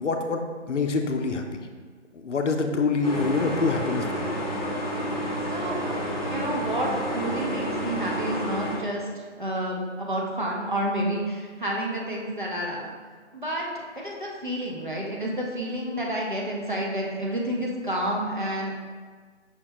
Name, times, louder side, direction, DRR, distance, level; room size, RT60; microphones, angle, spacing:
voice 1, 0.0-1.6 2.2-4.3, left 4 dB, 80° left, 4 dB, 0.5 m, -26 dB
sound 1, 3.0-8.8, equal, 30° left, 0.7 m, -30 dB
voice 2, 5.5-6.0 6.3-9.1 9.4-12.9 13.3-13.6 14.0-18.8, right 1 dB, 45° right, -3 dB, 0.6 m, -29 dB
5.6 x 2.2 x 2.8 m, 1.5 s
figure-of-eight pair, 175°, 36 cm